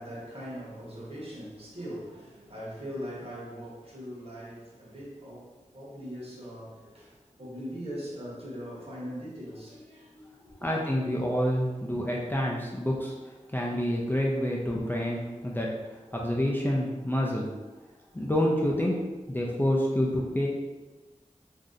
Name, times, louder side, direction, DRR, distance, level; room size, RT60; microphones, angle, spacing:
voice 1, 0.0-10.7, equal, 50° right, 1.0 m, -41 dB
voice 2, 10.6-17.5 18.1-18.9 19.3-20.5, equal, 15° left, 0.4 m, -28 dB
2.6 x 2.0 x 3.7 m
wide cardioid pair, 50°, 13 cm